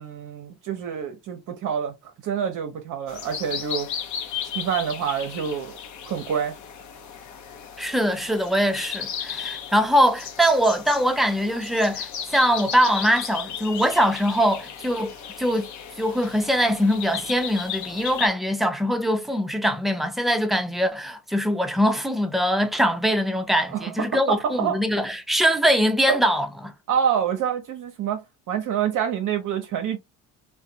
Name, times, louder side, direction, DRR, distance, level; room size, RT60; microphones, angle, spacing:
voice 1, 0.0-3.9 4.5-5.7 6.0-6.6 23.7-24.8 26.1-26.2 26.9-30.0, right 8 dB, 50° right, 0.7 m, -27 dB
sound 1, 3.1-18.3, left 8 dB, 50° left, 0.7 m, -35 dB
voice 2, 7.8-15.7 16.0-26.7, equal, ahead, 0.5 m, -22 dB
2.4 x 2.2 x 2.7 m
supercardioid pair, 75°, 39 cm